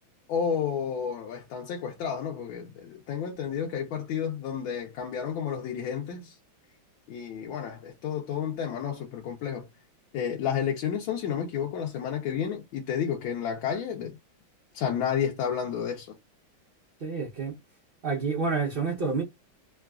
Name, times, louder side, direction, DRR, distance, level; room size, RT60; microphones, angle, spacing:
voice 1, 0.3-6.4 7.1-9.7 10.1-14.2 14.7-16.2, left 8 dB, 75° left, 1.5 m, -31 dB
voice 2, 17.0-17.6 18.0-19.2, right 4 dB, 75° right, 0.5 m, -28 dB
3.6 x 2.4 x 2.3 m
omnidirectional pair, 2.2 m